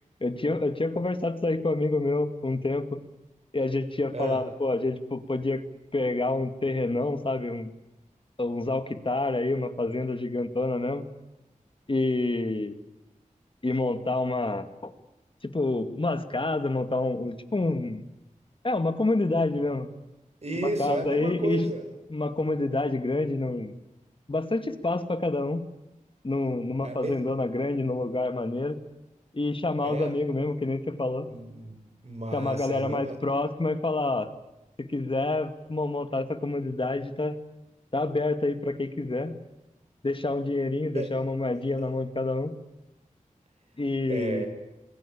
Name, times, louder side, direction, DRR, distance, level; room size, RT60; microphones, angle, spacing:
voice 1, 0.2-3.0 3.5-5.6 5.9-7.7 8.4-11.0 11.9-12.7 13.6-14.9 15.5-18.0 18.6-19.9 20.6-21.7 22.1-23.7 24.3-25.6 26.2-28.8 29.3-31.3 32.3-34.3 34.8-37.4 37.9-39.4 40.0-42.5 43.8-44.4, left 2 dB, 40° left, 9 dB, 2.3 m, -28 dB
voice 2, 20.4-21.9 26.8-27.2 29.8-30.2 31.3-31.8 32.0-33.2 40.9-41.1 44.1-44.5, right 2 dB, 50° right, 6 dB, 6.5 m, -32 dB
27.5 x 21.0 x 8.7 m, 0.98 s
wide cardioid pair, 80°, 14 cm